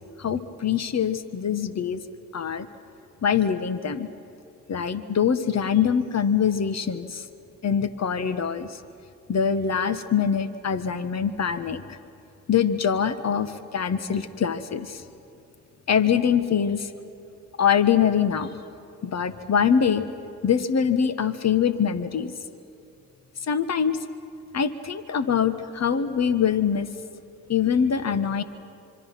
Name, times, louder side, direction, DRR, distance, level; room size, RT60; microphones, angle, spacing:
voice 1, 0.2-2.0 2.3-2.7 3.2-4.1 4.7-7.2 7.6-8.8 9.3-12.0 12.5-15.0 15.9-16.9 17.6-18.5 19.0-20.1 20.4-22.3 23.5-24.0 24.5-26.9 27.5-28.4, left 7 dB, 45° left, 11 dB, 1.5 m, -23 dB
25.5 x 24.5 x 5.9 m, 2.8 s
hypercardioid pair, 45°, 36 cm